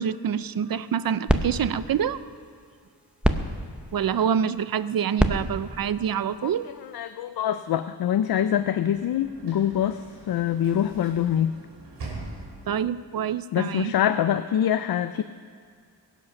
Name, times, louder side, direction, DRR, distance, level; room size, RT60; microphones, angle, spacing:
voice 1, 0.0-2.2 3.9-6.7 12.7-13.9, right 8 dB, 55° right, 15 dB, 0.5 m, -26 dB
sound 1, 0.7-7.1, right 1 dB, 5° right, 0.6 m, -30 dB
voice 2, 6.8-11.5 13.5-15.2, left 10 dB, 60° left, 11 dB, 0.5 m, -25 dB
Sliding door / Slam, 8.4-13.0, right 2 dB, 75° right, 3.1 m, -43 dB
21.5 x 8.2 x 5.8 m, 2.1 s
wide cardioid pair, 150°, 42 cm